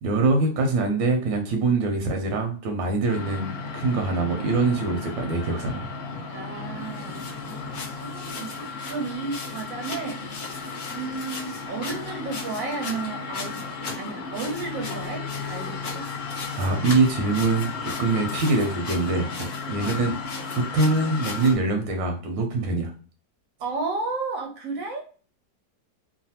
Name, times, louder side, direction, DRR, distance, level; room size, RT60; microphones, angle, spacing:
voice 1, 0.0-5.9 16.6-20.1 20.5-22.9, right 3 dB, 80° right, 4 dB, 1.3 m, -24 dB
sound 1, 3.1-21.5, left 4 dB, 50° left, 0.7 m, -34 dB
voice 2, 6.3-10.3 10.9-16.1 19.8-20.0 23.6-25.0, right 4 dB, 65° right, 2 dB, 0.8 m, -33 dB
3.2 x 2.2 x 2.7 m, 0.39 s
omnidirectional pair, 2.0 m